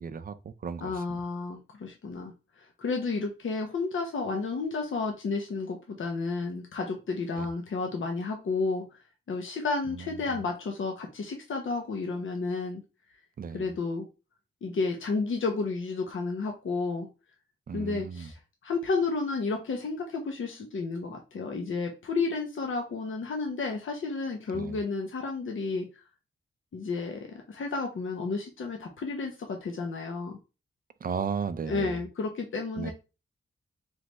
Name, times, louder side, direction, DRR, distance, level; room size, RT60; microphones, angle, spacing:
voice 1, 0.0-1.2 7.4-7.5 9.9-10.0 10.3-10.4 13.4-13.7 17.7-18.3 24.5-24.8 31.0-32.0 32.8-32.9, right 6 dB, 45° right, 0.4 m, -35 dB
voice 2, 0.8-8.9 9.3-12.8 13.5-14.1 14.6-17.1 17.7-25.9 26.7-30.4 31.7-32.9, left 4 dB, 70° left, 0.8 m, -32 dB
3.3 x 3.2 x 4.0 m
wide cardioid pair, 140°, 21 cm